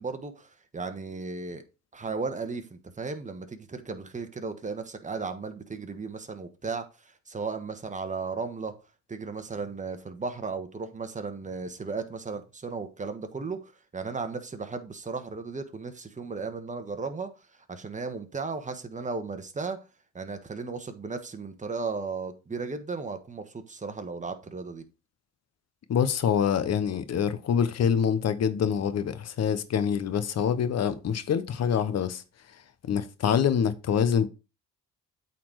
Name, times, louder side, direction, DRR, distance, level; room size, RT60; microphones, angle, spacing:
voice 1, 0.0-1.6 1.9-8.7 9.1-17.3 17.7-19.8 20.1-24.8, right 4 dB, 25° right, 1.3 m, -35 dB
voice 2, 25.9-32.2 32.8-34.3, left 7 dB, 55° left, 1.0 m, -25 dB
8.4 x 4.2 x 4.7 m
cardioid pair, 90°, 30 cm